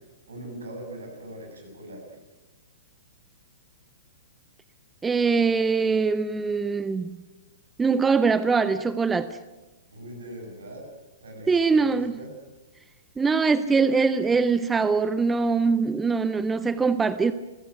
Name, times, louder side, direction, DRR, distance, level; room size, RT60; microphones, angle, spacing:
voice 1, 0.3-2.0 9.9-10.8 11.2-12.3, right 1 dB, 70° right, 3 dB, 7.8 m, -41 dB
voice 2, 5.0-7.2 7.8-9.4 11.5-12.2 13.2-17.3, right 4 dB, 10° right, 15 dB, 0.8 m, -22 dB
29.0 x 16.0 x 9.3 m, 1.1 s
figure-of-eight pair, 110°, 0 cm